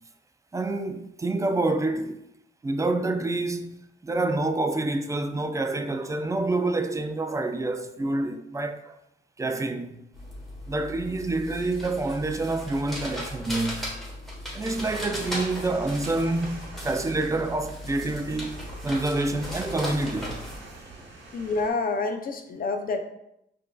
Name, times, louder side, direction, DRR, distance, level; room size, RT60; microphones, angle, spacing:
voice 1, 0.5-2.3 2.6-9.0 9.4-10.0 10.7-13.9 14.5-18.6 18.8-20.5, right 2 dB, 15° right, 0.3 m, -27 dB
sound 1, 10.1-20.6, left 1 dB, ahead, 1.2 m, -37 dB
sound 2, 14.7-21.7, right 2 dB, 80° right, 1.0 m, -45 dB
voice 2, 21.3-23.0, left 3 dB, 50° left, 0.5 m, -28 dB
5.1 x 2.6 x 2.2 m
cardioid pair, 80°, 19 cm